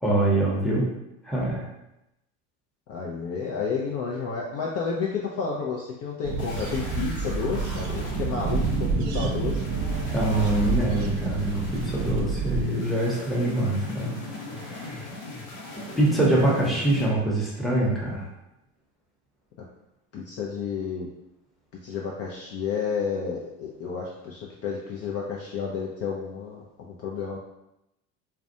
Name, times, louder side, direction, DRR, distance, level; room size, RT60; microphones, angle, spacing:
voice 1, 0.0-0.9 1.2-1.7 10.1-14.2 14.5-15.1 16.0-18.3, right 1 dB, ahead, -5 dB, 0.8 m, -24 dB
voice 2, 2.9-9.6 20.1-21.1 21.8-27.4, left 5 dB, 40° left, -3 dB, 0.4 m, -31 dB
sound 1, 6.2-12.6, right 4 dB, 50° right, 0.4 m, -28 dB
sound 2, 6.4-17.1, left 1 dB, 75° left, 1.0 m, -37 dB
2.4 x 2.2 x 2.6 m, 0.88 s
hypercardioid pair, 85°, 39 cm